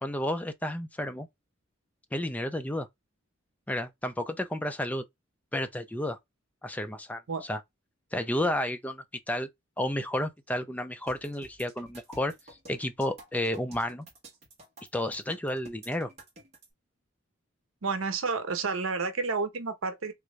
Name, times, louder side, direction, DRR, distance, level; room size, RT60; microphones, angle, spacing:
voice 1, 0.0-1.3 2.1-2.9 3.7-5.0 5.5-6.2 6.6-7.6 8.1-9.5 9.8-14.1 14.9-16.1, left 1 dB, 5° left, 0.4 m, -31 dB
sound 1, 11.1-16.7, right 2 dB, 30° right, 1.1 m, -51 dB
voice 2, 17.8-20.1, right 4 dB, 85° right, 0.7 m, -30 dB
3.4 x 2.6 x 3.1 m
head